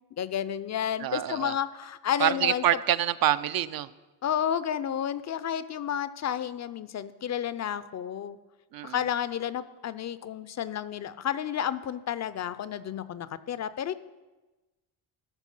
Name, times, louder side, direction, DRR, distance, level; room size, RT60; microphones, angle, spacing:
voice 1, 0.0-2.6 4.2-8.4 8.8-13.9, left 9 dB, 40° left, 15 dB, 0.4 m, -31 dB
voice 2, 1.0-1.5 2.2-3.9 8.7-9.0, right 12 dB, 55° right, 15 dB, 0.5 m, -26 dB
13.5 x 4.7 x 5.5 m, 1.2 s
cardioid pair, 85°, 44 cm